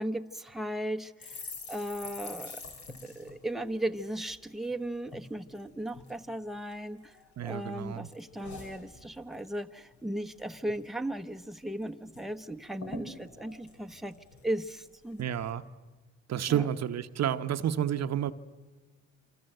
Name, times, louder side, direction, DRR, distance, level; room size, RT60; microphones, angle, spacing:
voice 1, 0.0-2.6 3.0-7.2 7.4-14.2 14.4-15.3 16.5-16.7, right 1 dB, ahead, 1.1 m, -36 dB
sound 1, 1.2-4.7 5.1-5.3 5.5-6.2 6.7-7.5 7.8-9.5 9.8-10.0 10.2-10.8 11.2-11.3 11.5-12.2 12.5-12.6 12.8-14.7 15.2-15.5, left 3 dB, 65° left, 5.5 m, -46 dB
voice 2, 7.4-8.1 15.2-15.6 16.3-18.3, right 10 dB, 60° right, 1.0 m, -30 dB
27.0 x 25.5 x 7.9 m
cardioid pair, 90°, 30 cm